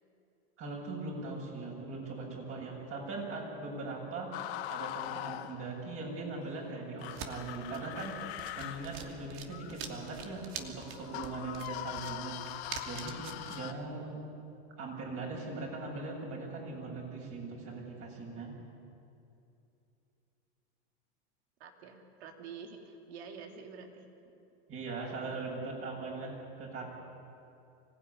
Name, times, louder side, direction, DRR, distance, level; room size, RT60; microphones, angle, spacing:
voice 1, 0.6-14.2 14.8-18.5 24.7-26.9, right 3 dB, 45° right, -1 dB, 8.0 m, -40 dB
sound 1, 4.3-6.0 7.0-13.7, left 14 dB, 75° left, 1.2 m, -42 dB
sound 2, 7.0-13.6, right 7 dB, 60° right, 2.7 m, -46 dB
voice 2, 21.6-24.1, right 5 dB, 80° right, 4 dB, 3.2 m, -47 dB
25.0 x 17.0 x 10.0 m, 2.7 s
supercardioid pair, 110°, 32 cm